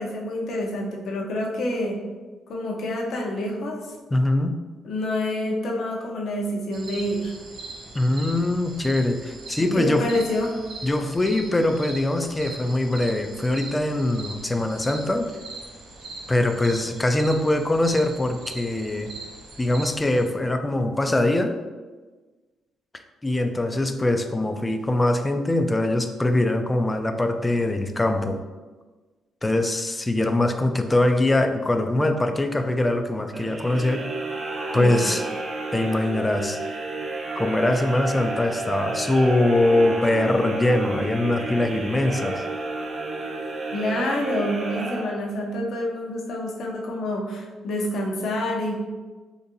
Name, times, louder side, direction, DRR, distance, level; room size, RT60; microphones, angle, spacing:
voice 1, 0.0-2.0 2.5-4.0 4.8-7.3 9.6-10.6 34.7-35.0 43.7-48.7, left 1 dB, 65° left, -1 dB, 0.7 m, -27 dB
voice 2, 4.1-4.6 7.9-10.1 10.8-15.3 16.3-19.1 19.6-21.5 23.2-28.4 29.4-34.0 34.7-35.2 35.7-36.6 37.4-42.4, left 1 dB, 15° left, 7 dB, 0.3 m, -22 dB
sound 1, 6.7-20.2, right 3 dB, 75° right, 0.8 m, -40 dB
sound 2, 33.3-45.6, right 2 dB, 40° right, 0.5 m, -31 dB
3.9 x 2.6 x 2.6 m, 1.3 s
cardioid pair, 90°, 0 cm